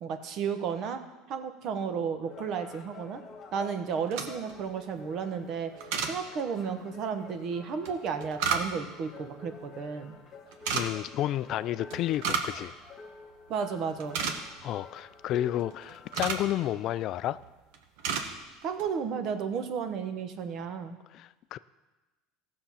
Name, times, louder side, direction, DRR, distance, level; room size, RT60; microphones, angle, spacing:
voice 1, 0.0-1.0 1.3-3.2 3.5-10.2 13.5-14.2 18.6-21.0, right 6 dB, 50° right, 8 dB, 1.1 m, -33 dB
sound 1, 2.2-16.3, left 4 dB, 35° left, 1.5 m, -49 dB
sound 2, 4.0-4.6 5.8-6.2 7.9-9.0 10.5-10.9 11.9-12.6 12.9-13.0 13.5-13.6 13.9-14.7 15.6-16.5 17.2-17.5 17.7-18.3 18.6-18.9, right 6 dB, 75° right, 1.2 m, -31 dB
voice 2, 10.7-12.7 14.6-17.4 21.1-21.6, left 13 dB, 50° left, 15 dB, 0.3 m, -31 dB
15.0 x 6.7 x 5.7 m, 1.1 s
supercardioid pair, 125°, 0 cm